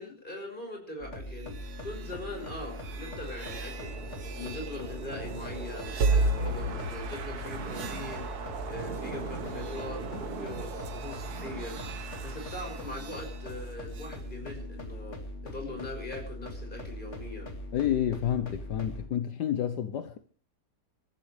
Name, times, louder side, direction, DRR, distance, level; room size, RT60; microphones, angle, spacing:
voice 1, 0.0-1.6 1.8-4.0 4.3-8.3 8.6-11.8 12.1-17.5, left 2 dB, 30° left, 6.5 m, -41 dB
sound 1, 1.0-19.1, left 1 dB, 45° left, 2.7 m, -41 dB
sound 2, 1.3-14.2, right 3 dB, 65° right, 1.8 m, -35 dB
voice 2, 17.7-20.2, left 10 dB, 75° left, 1.5 m, -29 dB
28.5 x 14.0 x 3.3 m
omnidirectional pair, 1.8 m